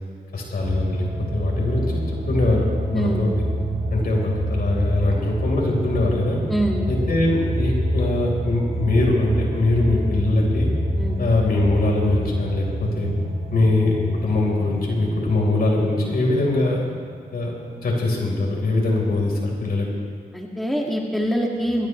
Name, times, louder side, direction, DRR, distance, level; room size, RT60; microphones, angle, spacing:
voice 1, 0.3-2.6 2.9-3.3 3.9-6.4 6.9-10.7 11.2-13.1 13.5-14.0 14.2-16.8 17.3-17.5 17.8-19.9, left 2 dB, 65° left, -2 dB, 4.6 m, -22 dB
sound 1, 0.6-18.1 18.5-18.6, right 1 dB, 60° right, 4.6 m, -27 dB
voice 2, 2.9-3.3 4.0-4.2 6.5-6.9 10.9-11.2 20.3-21.9, equal, ahead, -1 dB, 2.1 m, -24 dB
21.5 x 18.0 x 3.4 m, 2.1 s
cardioid pair, 70°, 17 cm